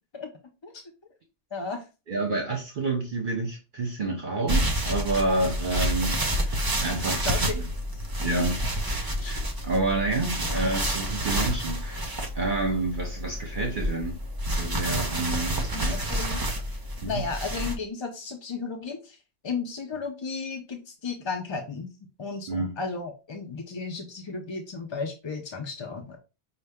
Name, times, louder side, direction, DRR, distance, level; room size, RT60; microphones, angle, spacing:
voice 1, 1.5-1.8 7.2-7.6 7.9-8.0 8.3-8.4 9.2-9.4 15.7-16.4 17.0-19.2 19.4-21.9 22.2-26.2, left 4 dB, 40° left, 0.4 m, -34 dB
voice 2, 2.1-7.6 8.2-8.6 9.2-14.2 14.5-16.1 17.0-17.2 22.5-22.8, right 2 dB, 50° right, 0.9 m, -29 dB
sound 1, 4.5-17.7, equal, 25° right, 0.6 m, -29 dB
5.4 x 2.2 x 3.4 m
omnidirectional pair, 1.1 m